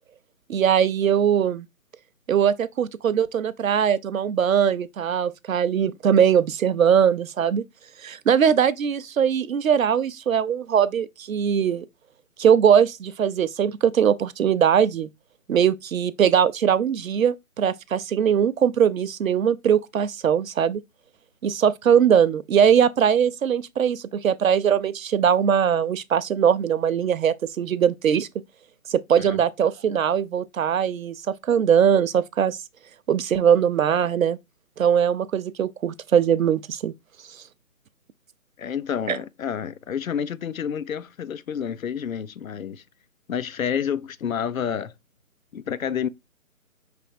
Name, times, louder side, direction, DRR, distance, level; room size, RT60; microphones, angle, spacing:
voice 1, 0.5-1.7 2.3-7.6 8.0-11.9 12.4-15.1 15.5-20.8 21.4-28.3 28.9-32.6 33.1-34.4 34.8-36.9 39.1-39.2, right 8 dB, 70° right, 0.6 m, -21 dB
voice 2, 38.6-42.8 43.3-44.9 45.5-46.1, left 8 dB, 70° left, 0.5 m, -29 dB
5.6 x 3.3 x 2.5 m
hypercardioid pair, 180°, 43 cm